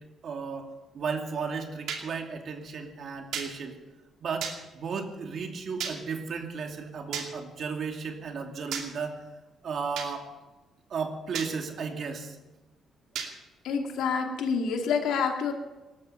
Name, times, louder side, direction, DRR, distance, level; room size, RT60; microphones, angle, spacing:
voice 1, 0.2-0.7 0.9-3.7 4.2-9.2 9.6-10.2 10.9-12.3, right 5 dB, 60° right, 4 dB, 2.5 m, -34 dB
sound 1, 1.9-2.0 3.3-3.5 4.4-4.6 5.8-6.0 7.1-7.3 8.7-8.9 10.0-10.1 11.3-11.5 13.2-13.3, right 7 dB, 80° right, 2.6 m, -33 dB
voice 2, 13.6-15.5, left 6 dB, 85° left, 3 dB, 2.4 m, -27 dB
19.0 x 13.0 x 5.8 m, 1.1 s
cardioid pair, 90°, 0 cm